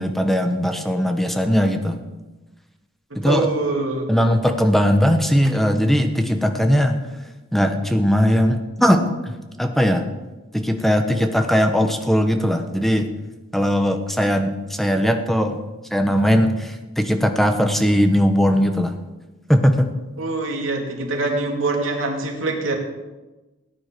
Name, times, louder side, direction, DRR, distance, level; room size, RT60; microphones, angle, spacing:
voice 1, 0.0-2.0 3.1-3.5 4.1-7.0 7.5-9.3 9.6-10.1 10.5-13.1 13.5-15.6 15.9-18.9 19.5-19.9, equal, ahead, 6 dB, 1.1 m, -19 dB
voice 2, 3.1-4.1 20.2-22.7, right 3 dB, 85° right, 1 dB, 2.6 m, -24 dB
17.5 x 9.5 x 5.3 m, 1.1 s
head